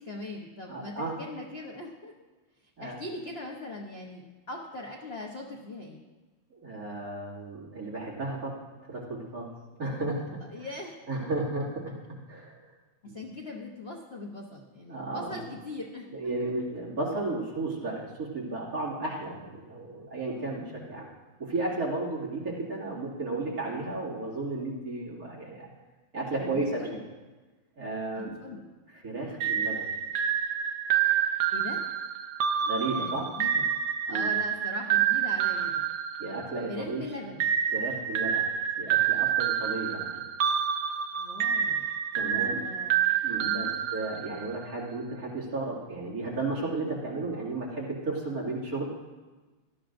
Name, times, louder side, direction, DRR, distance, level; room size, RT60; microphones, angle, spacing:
voice 1, 0.0-2.1 2.6-6.0 10.4-10.9 13.0-16.1 20.4-20.9 26.3-27.0 28.1-28.6 31.5-31.8 32.9-33.7 34.0-35.9 36.7-37.5 41.2-41.9 42.2-43.1 43.3-43.7, left 2 dB, 45° left, 0 dB, 0.8 m, -41 dB
voice 2, 0.7-1.1 2.8-3.0 6.5-8.6 8.9-9.5 9.8-10.7 11.1-11.9 12.3-12.6 13.1-13.2 14.9-15.5 16.1-21.1 21.4-25.7 26.1-26.8 27.8-28.6 28.9-29.9 32.6-33.3 34.1-34.3 36.2-37.1 37.7-38.4 38.8-40.1 42.1-42.6 43.2-48.9, right 2 dB, 45° right, -5 dB, 2.9 m, -33 dB
sound 1, 29.4-36.8 37.4-44.6, right 8 dB, 70° right, 1.0 m, -28 dB
17.5 x 12.5 x 2.6 m, 1.3 s
omnidirectional pair, 2.3 m